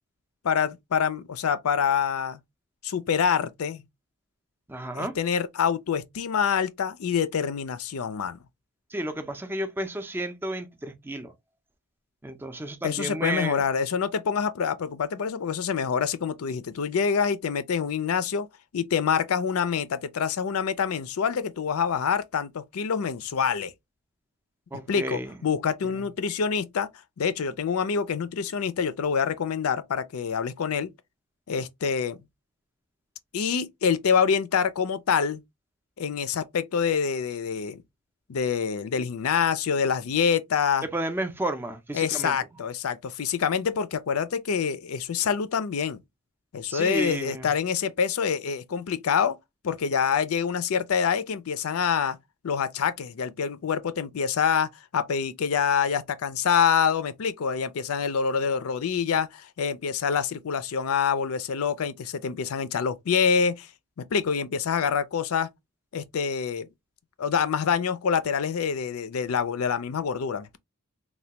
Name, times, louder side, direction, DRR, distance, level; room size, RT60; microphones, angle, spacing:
voice 1, 0.4-2.4 2.8-3.8 4.9-8.4 12.8-18.5 18.7-23.7 24.9-26.9 27.2-30.9 31.5-32.2 33.3-35.4 36.0-37.8 38.3-40.9 41.9-46.0 46.5-49.4 49.6-52.2 52.4-63.7 64.0-65.5 65.9-66.7 67.2-70.6, left 6 dB, 85° left, 0.4 m, -26 dB
voice 2, 4.7-5.1 8.9-11.3 12.2-13.6 24.7-25.3 40.9-42.3 46.7-47.5, right 1 dB, 10° right, 0.4 m, -32 dB
3.2 x 2.2 x 2.8 m
head